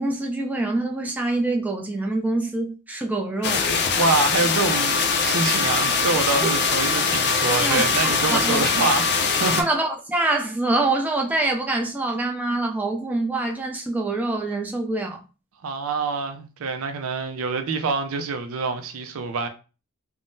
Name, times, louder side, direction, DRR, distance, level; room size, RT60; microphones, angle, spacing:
voice 1, 0.0-3.7 7.6-8.6 9.6-15.2, right 2 dB, 10° right, 0.4 m, -25 dB
sound 1, 3.4-9.6, left 5 dB, 55° left, 0.4 m, -22 dB
voice 2, 3.9-9.6 15.6-19.5, right 4 dB, 70° right, 0.5 m, -26 dB
3.6 x 2.0 x 2.6 m
head